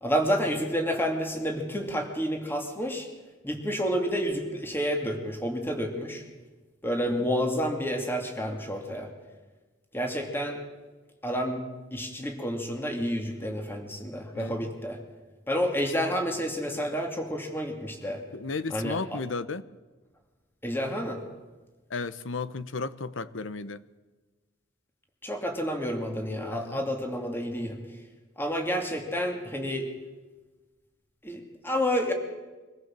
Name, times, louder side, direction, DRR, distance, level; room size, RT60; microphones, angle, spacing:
voice 1, 0.0-3.1 3.4-6.2 6.8-9.1 9.9-10.6 11.2-11.6 11.9-15.0 15.5-18.2 18.7-19.0 20.6-21.2 25.2-27.8 28.4-29.9 31.2-32.1, equal, 10° left, 3 dB, 2.5 m, -29 dB
voice 2, 18.3-19.6 21.9-23.8 26.5-26.8, left 4 dB, 85° left, 15 dB, 0.9 m, -34 dB
24.0 x 15.0 x 7.5 m, 1.3 s
head